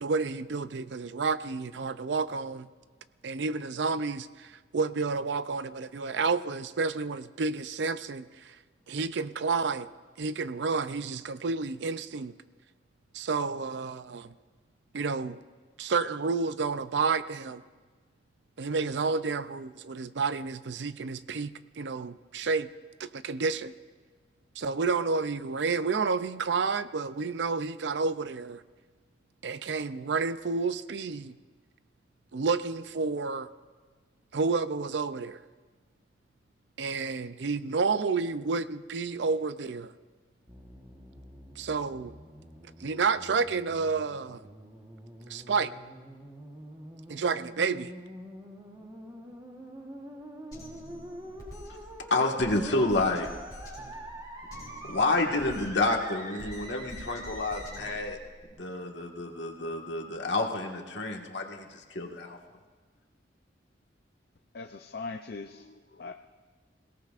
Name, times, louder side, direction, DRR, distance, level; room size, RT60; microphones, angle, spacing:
voice 1, 0.0-2.7 3.2-8.3 8.9-9.9 10.2-12.3 13.1-14.3 14.9-15.4 15.8-17.6 18.6-22.7 23.0-23.7 24.6-28.6 29.4-31.3 32.3-33.5 34.3-35.4 36.8-39.9 41.6-42.1 42.8-44.4 45.3-45.7 47.1-47.9, right 4 dB, 70° right, 0.5 m, -30 dB
sound 1, 40.5-58.0, right 1 dB, 20° right, 1.3 m, -46 dB
Drum kit, 50.5-58.5, left 1 dB, 20° left, 4.1 m, -47 dB
voice 2, 52.1-53.3 54.9-58.2 58.5-62.4, left 2 dB, 75° left, 1.7 m, -29 dB
voice 3, 64.5-66.1, left 3 dB, 55° left, 0.5 m, -40 dB
28.5 x 17.5 x 2.5 m
head